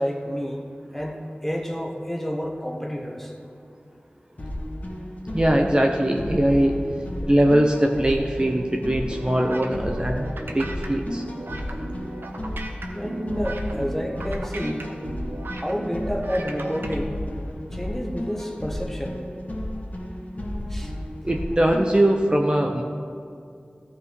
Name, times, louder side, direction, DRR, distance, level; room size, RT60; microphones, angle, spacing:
voice 1, 0.0-3.3 12.9-14.9 15.5-17.2 17.7-19.2 20.7-20.9, equal, 10° left, 2 dB, 1.3 m, -29 dB
sound 1, 4.4-22.1, left 1 dB, 50° left, 1.9 m, -33 dB
voice 2, 5.3-6.7 7.3-11.2 21.2-22.8, right 1 dB, 25° right, 2 dB, 0.7 m, -21 dB
sound 2, 9.1-17.0, right 2 dB, 80° right, 0.9 m, -37 dB
14.0 x 5.7 x 4.7 m, 2.4 s
wide cardioid pair, 40°, 3 cm